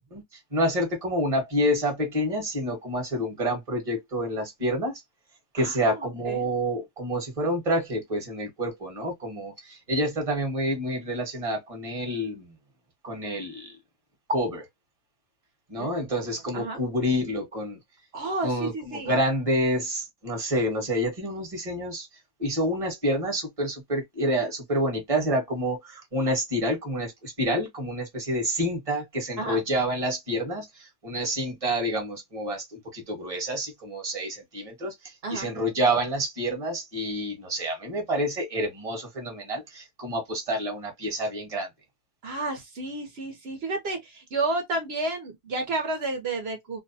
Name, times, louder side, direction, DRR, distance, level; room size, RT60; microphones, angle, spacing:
voice 1, 0.5-4.9 5.5-12.5 13.0-13.7 14.3-14.7 15.7-17.8 18.4-22.1 22.4-41.7, equal, 25° right, 0.9 m, -28 dB
voice 2, 5.6-6.4 15.8-15.9 16.5-16.8 18.1-19.1 29.4-29.6 35.2-35.5 42.2-46.8, right 2 dB, 60° right, 0.7 m, -31 dB
2.7 x 2.1 x 2.5 m
omnidirectional pair, 1.7 m